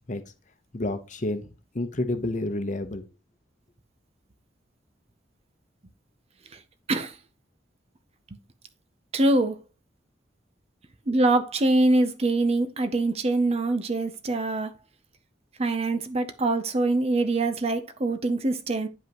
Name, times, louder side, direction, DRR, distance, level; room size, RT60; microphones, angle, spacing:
voice 1, 0.7-1.5 1.7-3.0, left 2 dB, 45° left, 0.9 m, -29 dB
voice 2, 9.1-9.6 11.1-14.7 15.6-18.9, right 2 dB, 35° right, 0.6 m, -24 dB
9.3 x 5.4 x 3.0 m
head